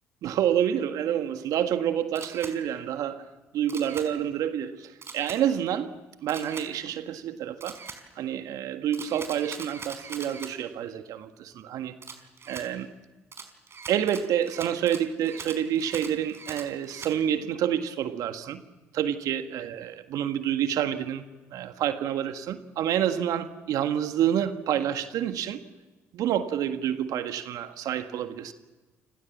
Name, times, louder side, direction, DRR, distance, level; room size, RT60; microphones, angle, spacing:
voice 1, 0.2-3.3 3.5-5.9 6.2-7.8 8.2-11.9 12.5-12.9 13.9-18.6 18.9-21.2 21.5-25.6 26.1-28.5, right 10 dB, 65° right, 1.7 m, -28 dB
Camera, 2.2-2.6 3.7-4.1 5.0-5.4 6.3-6.7 7.6-8.0 8.9-10.5 12.0-12.7 13.3-17.1, right 5 dB, 40° right, 5.3 m, -41 dB
29.5 x 27.0 x 7.4 m
hypercardioid pair, 50°, 7 cm